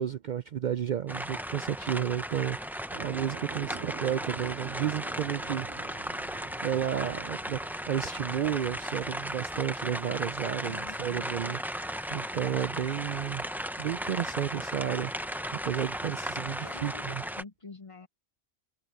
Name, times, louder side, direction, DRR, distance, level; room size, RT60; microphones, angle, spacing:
voice 1, 0.0-5.9 6.6-13.5 13.8-17.2, right 10 dB, 60° right, 0.5 m, -32 dB
sound 1, 1.1-17.4, equal, ahead, 0.6 m, -36 dB
sound 2, 2.9-9.7, right 13 dB, 85° right, 0.9 m, -47 dB
voice 2, 10.6-11.5 16.6-18.1, left 3 dB, 35° left, 0.8 m, -47 dB
omnidirectional pair, 1.1 m